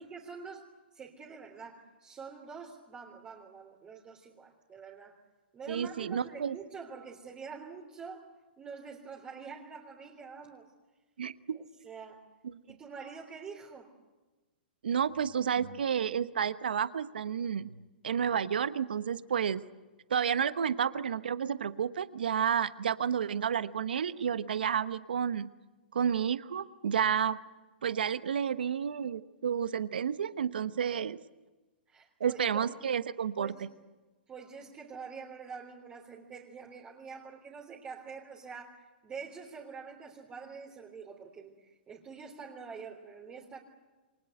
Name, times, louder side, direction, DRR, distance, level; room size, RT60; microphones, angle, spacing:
voice 1, 0.1-5.2 5.5-10.7 11.5-12.2 12.6-14.0 31.9-32.8 33.4-33.6 34.3-43.6, right 5 dB, 20° right, -1 dB, 3.5 m, -46 dB
voice 2, 5.7-6.6 11.2-11.6 14.8-17.7 18.0-19.6 20.1-25.5 25.9-27.4 27.8-31.2 32.2-33.5, right 8 dB, 75° right, 14 dB, 1.1 m, -31 dB
28.5 x 23.5 x 8.0 m, 1.2 s
hypercardioid pair, 125°, 5 cm